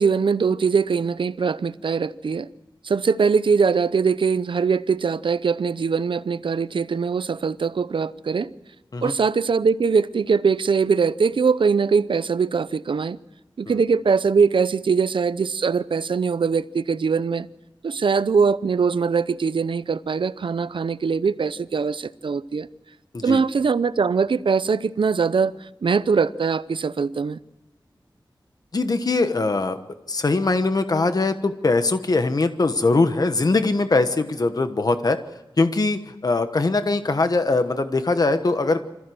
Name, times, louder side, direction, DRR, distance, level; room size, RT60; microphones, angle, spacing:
voice 1, 0.0-2.5 2.8-8.5 9.0-13.2 13.6-17.5 17.8-22.7 23.2-27.4, right 5 dB, 85° right, 0.7 m, -22 dB
voice 2, 28.7-29.8 30.1-35.2 35.6-38.8, left 3 dB, 50° left, 1.2 m, -21 dB
26.0 x 15.0 x 7.8 m
wide cardioid pair, 90°, 8 cm